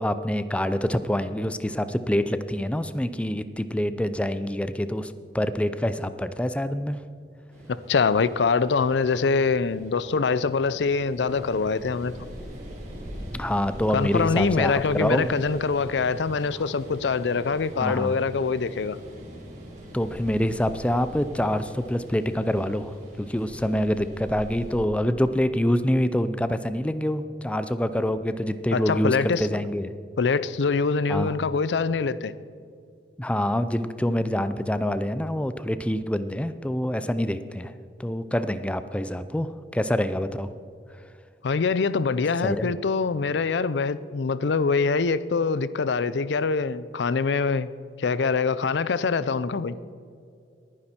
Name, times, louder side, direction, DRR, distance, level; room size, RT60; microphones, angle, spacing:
voice 1, 0.0-7.0 13.2-15.3 17.8-18.2 19.9-29.9 31.1-31.3 33.2-37.7 38.0-40.5 42.4-42.7, left 1 dB, 5° left, 12 dB, 0.4 m, -26 dB
sound 1, 7.5-24.8, equal, 45° right, 3.5 m, -42 dB
voice 2, 7.7-12.1 13.9-19.0 28.7-29.5 30.2-32.3 41.4-47.7 48.0-49.8, left 4 dB, 85° left, 16 dB, 0.5 m, -24 dB
20.5 x 9.7 x 4.4 m, 2.4 s
head